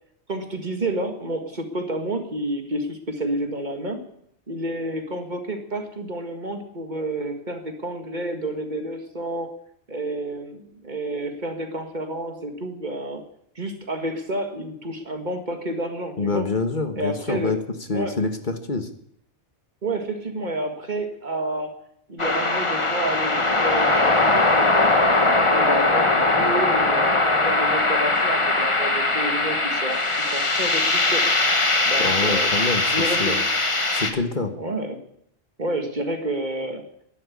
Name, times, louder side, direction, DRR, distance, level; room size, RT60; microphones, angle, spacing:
voice 1, 0.3-4.0 4.5-9.5 9.9-13.2 13.6-16.5 17.0-17.6 17.9-18.2 19.8-21.7 22.1-30.0 30.3-31.2 31.9-32.5 32.9-33.5 34.5-35.0 35.6-36.8, right 1 dB, 40° right, 6 dB, 2.0 m, -30 dB
voice 2, 16.2-17.6 17.9-18.9 32.0-32.8 33.2-33.4 33.9-34.5, left 3 dB, 45° left, 8 dB, 1.4 m, -26 dB
sound 1, 22.2-34.1, left 2 dB, 25° left, 1.5 m, -20 dB
12.0 x 11.5 x 8.4 m, 0.73 s
omnidirectional pair, 1.2 m